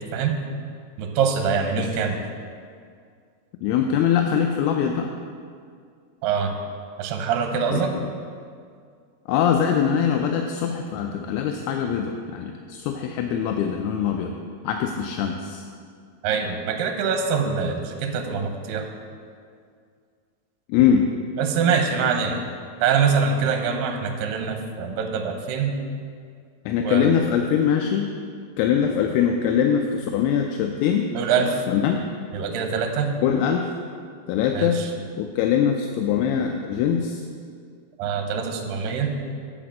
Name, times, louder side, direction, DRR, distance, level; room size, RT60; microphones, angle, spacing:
voice 1, 1.0-2.2 6.2-6.5 7.0-8.0 16.2-18.9 21.4-22.4 22.8-25.8 26.8-27.1 31.1-31.6 32.3-33.1 34.5-34.9 38.0-39.1, right 6 dB, 75° right, 4 dB, 2.2 m, -24 dB
voice 2, 3.6-5.1 7.7-8.1 9.3-14.3 14.6-15.6 20.7-21.1 26.7-28.1 28.6-31.1 31.7-32.0 33.2-33.7 34.3-34.8 35.2-37.2, left 8 dB, 85° left, 3 dB, 2.5 m, -22 dB
9.0 x 5.1 x 7.3 m, 2.2 s
omnidirectional pair, 4.7 m